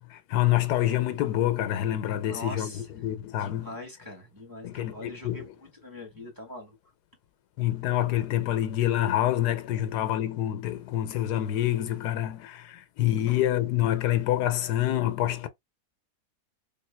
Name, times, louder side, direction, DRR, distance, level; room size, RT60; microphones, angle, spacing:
voice 1, 0.0-3.8 4.6-5.5 7.6-15.5, left 13 dB, 85° left, 1.2 m, -27 dB
voice 2, 2.2-2.9 3.4-5.5 5.8-6.8, left 1 dB, 15° right, 1.1 m, -42 dB
3.6 x 2.5 x 3.2 m
omnidirectional pair, 1.7 m